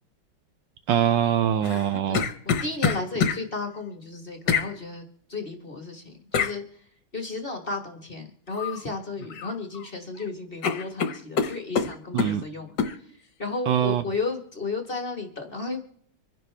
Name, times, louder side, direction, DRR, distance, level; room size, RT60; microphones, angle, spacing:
voice 1, 0.9-2.3 12.1-12.4 13.7-14.0, right 10 dB, 70° right, 1.4 m, -23 dB
sound 1, 1.6-3.4 4.5-4.7 6.3-6.6 8.5-8.8 9.2-9.9 10.2-10.3 10.6-12.4 12.8-13.0, left 6 dB, 60° left, 1.5 m, -26 dB
voice 2, 2.1-6.6 7.1-15.8, left 3 dB, 30° left, 1.4 m, -34 dB
26.0 x 10.5 x 3.3 m
omnidirectional pair, 2.3 m